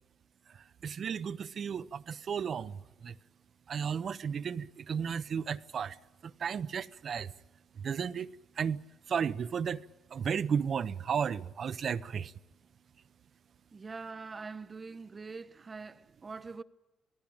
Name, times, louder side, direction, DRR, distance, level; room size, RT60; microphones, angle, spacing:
voice 1, 0.8-3.1 3.7-6.0 6.4-7.3 7.8-8.3 8.6-8.8 9.1-9.8 10.1-12.3, right 7 dB, 55° right, 0.8 m, -33 dB
voice 2, 13.7-16.6, right 4 dB, 30° right, 1.1 m, -44 dB
27.5 x 18.5 x 8.9 m
cardioid pair, 90°, 0 cm